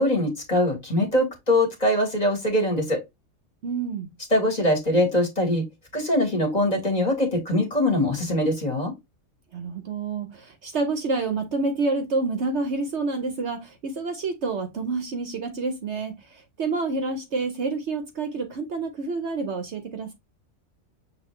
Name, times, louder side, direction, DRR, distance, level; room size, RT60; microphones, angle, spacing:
voice 1, 0.0-3.0 4.3-5.6 5.9-8.9, left 1 dB, 30° left, 1.5 m, -22 dB
voice 2, 3.6-4.1 9.5-16.1 16.6-20.1, right 3 dB, 60° right, 1.0 m, -28 dB
6.2 x 2.5 x 3.1 m
omnidirectional pair, 1.5 m